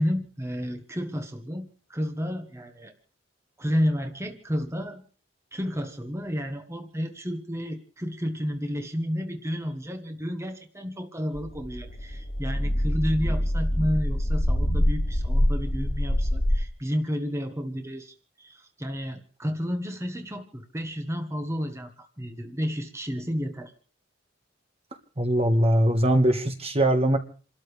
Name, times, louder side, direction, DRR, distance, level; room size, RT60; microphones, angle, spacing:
voice 1, 0.0-2.9 3.6-5.0 5.5-23.7, equal, 15° right, 1.4 m, -31 dB
sound 1, 11.3-16.6, equal, 60° left, 2.1 m, -25 dB
voice 2, 25.2-27.2, right 1 dB, 35° right, 1.5 m, -21 dB
29.0 x 13.0 x 3.3 m
head